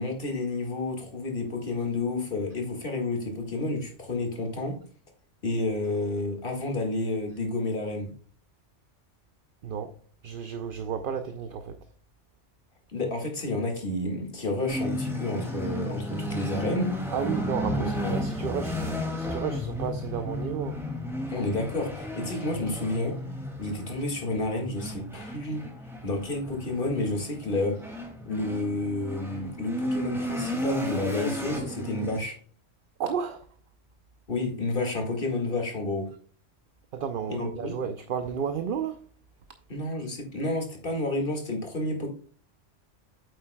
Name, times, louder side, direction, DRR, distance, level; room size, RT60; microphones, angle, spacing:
voice 1, 0.0-4.8 5.4-8.1 12.9-16.9 17.7-18.2 21.3-23.2 23.6-25.6 26.0-27.8 28.3-32.4 34.3-36.1 37.3-37.8 39.7-42.1, left 2 dB, 45° left, 2.1 m, -30 dB
voice 2, 9.6-10.0 10.2-11.9 17.1-20.9 33.0-33.5 36.9-39.0, right 7 dB, 55° right, 0.7 m, -32 dB
sound 1, 14.7-32.2, left 1 dB, ahead, 2.1 m, -33 dB
8.6 x 7.8 x 2.2 m
omnidirectional pair, 1.3 m